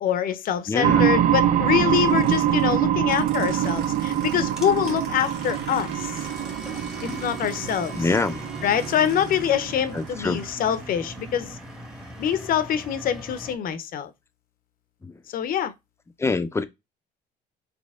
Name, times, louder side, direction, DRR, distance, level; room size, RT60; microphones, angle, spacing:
voice 1, 0.0-6.1 7.0-7.9 8.6-11.6 12.2-14.1 15.3-15.7, left 9 dB, 55° left, 0.6 m, -25 dB
voice 2, 0.7-1.1 7.1-7.2 7.9-8.4 9.9-10.4 15.0-15.2 16.2-16.6, left 3 dB, 15° left, 0.5 m, -25 dB
sound 1, 0.8-10.4, right 11 dB, 50° right, 0.4 m, -24 dB
Aircraft, 1.9-13.0, right 5 dB, 75° right, 1.4 m, -42 dB
sound 2, 3.1-13.6, equal, 5° right, 1.0 m, -42 dB
4.2 x 2.8 x 3.5 m
cardioid pair, 110°, 17 cm